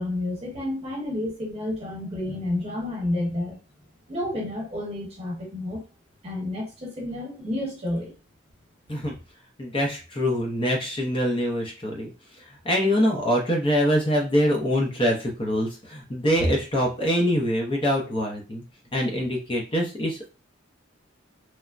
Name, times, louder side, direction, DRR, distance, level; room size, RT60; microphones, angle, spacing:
voice 1, 0.0-3.6 4.1-5.8 6.2-8.1, left 1 dB, 30° right, -2 dB, 1.0 m, -30 dB
voice 2, 9.6-12.1 12.4-18.6 18.9-20.3, equal, 25° left, -1 dB, 0.5 m, -24 dB
3.2 x 2.0 x 2.4 m, 0.32 s
head